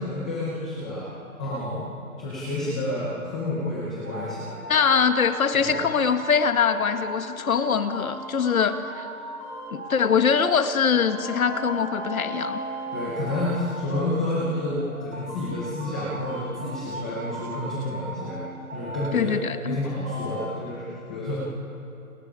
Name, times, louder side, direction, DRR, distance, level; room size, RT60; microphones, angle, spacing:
voice 1, 0.0-1.9 2.2-4.5 5.6-5.7 12.9-18.4 18.7-19.3 19.6-21.4, left 1 dB, 5° left, -8 dB, 0.7 m, -30 dB
sound 1, 4.0-19.7 20.0-20.5, right 1 dB, 75° right, 7.3 m, -37 dB
voice 2, 4.7-9.1 9.7-12.6 19.1-19.8, left 6 dB, 70° left, 8 dB, 1.8 m, -23 dB
29.5 x 29.5 x 5.0 m, 2.7 s
hypercardioid pair, 170°, 43 cm